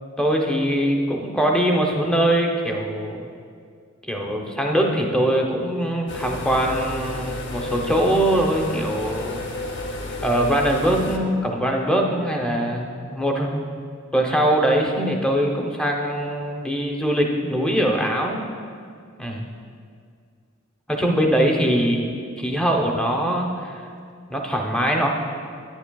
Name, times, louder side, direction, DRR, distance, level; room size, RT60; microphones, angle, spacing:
voice 1, 0.2-3.2 4.1-9.4 10.2-13.8 14.1-18.5 19.2-19.5 20.9-22.0 22.4-23.9 24.3-25.1, right 1 dB, 5° left, 0 dB, 0.7 m, -22 dB
sound 1, 6.1-11.2, left 2 dB, 60° left, 0.7 m, -31 dB
9.9 x 9.7 x 2.3 m, 2.2 s
head